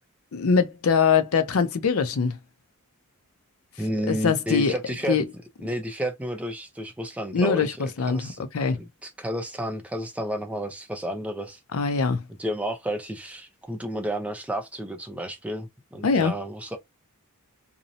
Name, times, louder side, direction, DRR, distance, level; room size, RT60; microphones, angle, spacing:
voice 1, 0.3-2.4 4.1-4.7 5.1-5.2 7.3-8.8 11.7-12.2 16.0-16.3, left 5 dB, 70° left, 0.5 m, -23 dB
voice 2, 3.8-5.2 5.6-8.4 8.7-11.6 12.4-16.8, equal, 5° right, 0.4 m, -31 dB
2.6 x 2.0 x 2.6 m
head